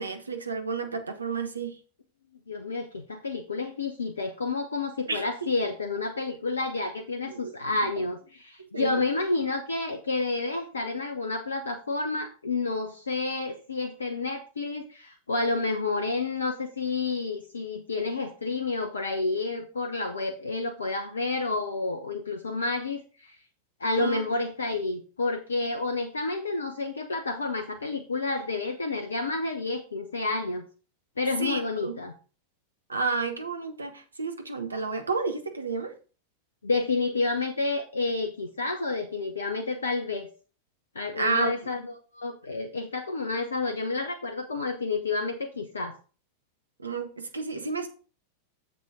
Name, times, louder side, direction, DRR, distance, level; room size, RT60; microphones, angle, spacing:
voice 1, 0.0-1.8 5.1-5.2 7.3-7.5 8.6-9.0 24.0-24.2 31.4-32.0 32.9-35.9 41.2-41.5 46.8-47.9, right 4 dB, 75° right, 6 dB, 1.3 m, -31 dB
voice 2, 2.5-23.4 23.8-30.6 31.2-32.1 36.6-40.3 40.9-46.0, left 3 dB, 75° left, 4 dB, 0.9 m, -30 dB
7.4 x 7.3 x 3.7 m, 0.37 s
figure-of-eight pair, 90°, 0 cm